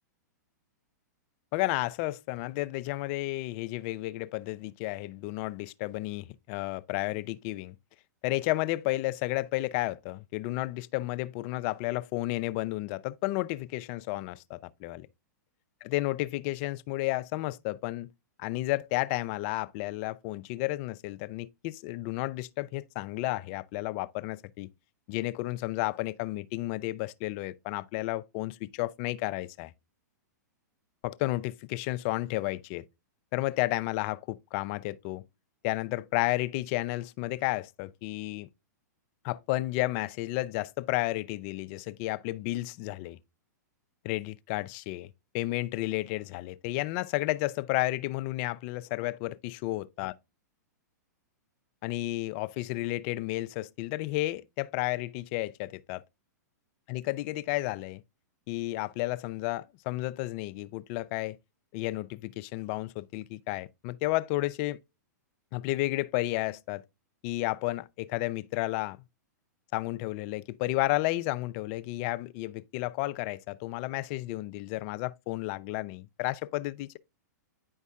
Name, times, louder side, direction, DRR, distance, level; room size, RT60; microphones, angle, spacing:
voice 1, 1.5-7.8 8.2-15.1 15.8-18.1 18.4-24.7 25.1-29.7 31.0-32.8 33.3-35.2 35.6-38.5 39.2-43.2 44.0-45.1 45.3-50.1 51.8-56.0 56.9-58.0 58.5-61.4 61.7-64.8 65.5-66.8 67.2-69.0 69.7-77.0, left 18 dB, 40° left, 0.4 m, -32 dB
9.2 x 5.4 x 2.3 m
hypercardioid pair, 130°, 10 cm